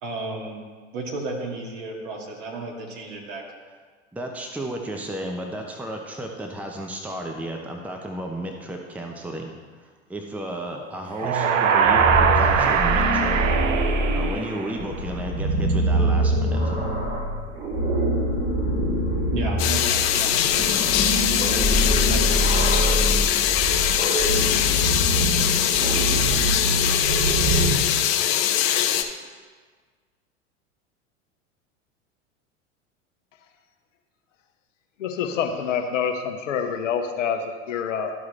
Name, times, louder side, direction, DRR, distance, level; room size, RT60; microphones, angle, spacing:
voice 1, 0.0-0.6 0.9-3.4 11.2-11.8 19.3-21.0 21.9-23.2, right 3 dB, 55° right, -1 dB, 2.2 m, -33 dB
voice 2, 4.1-9.5 9.8-13.4 13.7-16.8, right 1 dB, 5° right, 2 dB, 0.8 m, -33 dB
sound 1, 11.2-15.0, right 7 dB, 80° right, 0.6 m, -21 dB
sound 2, 11.9-27.7, right 1 dB, 25° right, 2.6 m, -24 dB
sound 3, 19.6-29.0, left 10 dB, 45° left, 0.8 m, -22 dB
voice 3, 35.0-38.1, left 7 dB, 75° left, 5 dB, 1.0 m, -26 dB
13.5 x 4.7 x 3.2 m, 1.5 s
hypercardioid pair, 85°, 38 cm